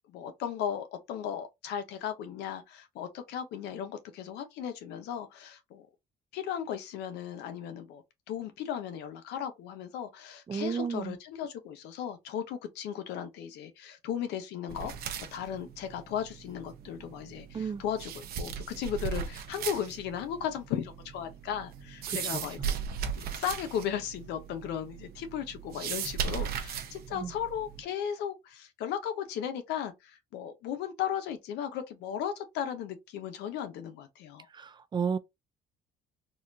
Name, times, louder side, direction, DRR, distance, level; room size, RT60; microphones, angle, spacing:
voice 1, 0.1-5.9 6.3-14.9 15.3-22.8 23.1-34.5, left 9 dB, 85° left, 0.8 m, -36 dB
voice 2, 10.5-11.2 17.5-17.8 22.1-22.4 27.1-27.3 34.5-35.2, right 6 dB, 25° right, 0.4 m, -33 dB
sound 1, 14.7-27.8, right 7 dB, 65° right, 0.8 m, -38 dB
4.1 x 2.4 x 2.7 m
cardioid pair, 110°, 17 cm